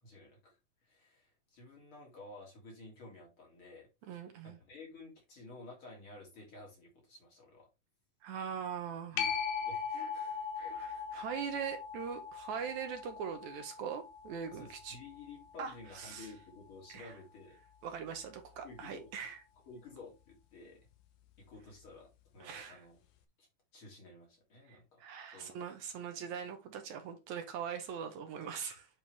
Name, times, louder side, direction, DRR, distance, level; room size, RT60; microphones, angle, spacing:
voice 1, 0.0-7.7 9.1-9.3 9.6-11.2 14.5-17.6 18.6-19.1 19.7-20.8 21.4-22.1 22.3-23.0 23.4-23.5 23.7-25.0 25.3-25.6, left 3 dB, 45° left, 3.0 m, -53 dB
voice 2, 4.1-4.6 8.2-9.2 10.8-15.0 15.6-16.3 16.9-17.1 17.8-19.4 22.4-22.8 24.7-28.9, right 7 dB, 70° right, 2.1 m, -41 dB
sound 1, 9.2-16.3 21.9-22.0, left 6 dB, 75° left, 2.3 m, -40 dB
8.6 x 4.6 x 3.3 m
omnidirectional pair, 3.7 m